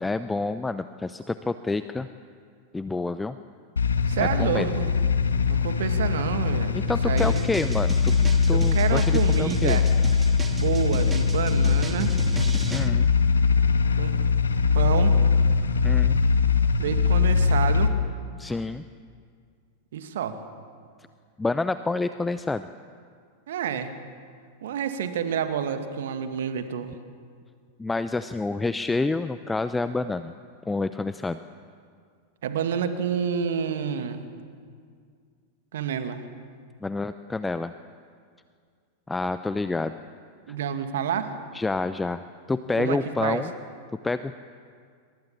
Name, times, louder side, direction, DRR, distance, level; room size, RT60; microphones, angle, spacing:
voice 1, 0.0-2.1 2.7-3.4 4.2-4.7 6.9-8.1 8.5-9.8 12.7-13.1 15.8-16.2 18.4-18.8 21.4-22.7 27.8-30.3 30.7-31.4 36.8-37.7 39.1-40.0 41.5-42.2 42.5-43.5 44.0-44.3, left 3 dB, 10° left, 12 dB, 0.7 m, -28 dB
sound 1, 3.8-17.9, left 5 dB, 75° left, 1.6 m, -22 dB
voice 2, 4.1-4.9 5.5-7.5 8.5-9.9 10.5-12.2 14.0-14.2 14.7-15.1 16.8-17.9 19.9-20.4 23.5-23.9 24.6-26.9 32.4-34.2 35.7-36.2 40.5-41.4 42.8-43.4, right 8 dB, 60° right, 8 dB, 2.2 m, -28 dB
sound 2, 7.2-12.9, right 3 dB, 15° right, 2.0 m, -37 dB
28.0 x 25.0 x 7.3 m, 2.1 s
figure-of-eight pair, 90°, 0 cm